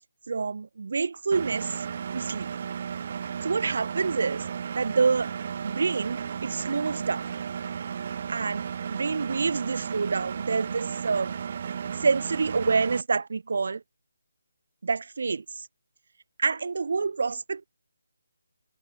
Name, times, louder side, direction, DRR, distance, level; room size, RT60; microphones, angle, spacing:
voice 1, 0.3-1.8 2.1-2.5 3.4-4.5 4.8-5.3 5.6-7.3 8.3-8.6 8.9-11.3 12.0-13.8 14.8-15.7 16.4-17.7, right 4 dB, 55° right, 0.5 m, -27 dB
Engine, 1.3-13.0, right 7 dB, 40° right, 0.9 m, -34 dB
figure-of-eight pair, 155°, 0 cm